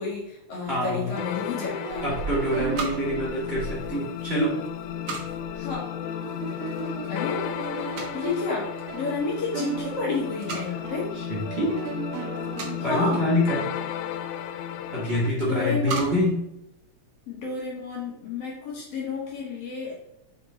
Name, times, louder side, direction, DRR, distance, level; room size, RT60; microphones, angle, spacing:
voice 1, 0.0-2.1 5.5-5.9 7.1-7.4 8.1-11.1 12.8-13.2 15.4-16.2 17.3-20.1, left 4 dB, 55° left, -3 dB, 2.7 m, -31 dB
voice 2, 0.7-1.1 2.0-4.5 11.2-11.7 12.8-13.6 14.9-16.4, left 1 dB, 25° right, -6 dB, 1.8 m, -25 dB
sound 1, 0.7-13.2, right 6 dB, 85° right, 1.4 m, -37 dB
sound 2, 1.2-15.3, left 10 dB, 90° left, 2.0 m, -34 dB
sound 3, 2.5-17.4, right 4 dB, 60° right, 2.3 m, -42 dB
6.5 x 5.0 x 4.3 m, 0.85 s
omnidirectional pair, 3.4 m